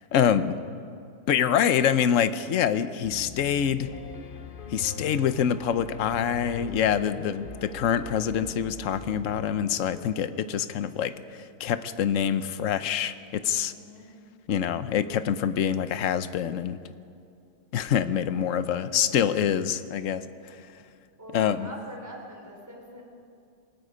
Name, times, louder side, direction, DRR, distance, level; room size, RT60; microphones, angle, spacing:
voice 1, 0.1-0.6 1.3-3.9 4.7-11.1 11.6-13.7 14.5-16.8 17.7-20.2 21.3-21.7, left 9 dB, 60° left, 12 dB, 0.8 m, -25 dB
Piano, 3.0-10.1, left 5 dB, 85° left, 0.4 m, -41 dB
voice 2, 13.4-14.1 18.3-18.8 21.2-23.0, right 1 dB, 10° right, -2 dB, 4.1 m, -44 dB
27.5 x 19.0 x 5.1 m, 2.5 s
omnidirectional pair, 2.2 m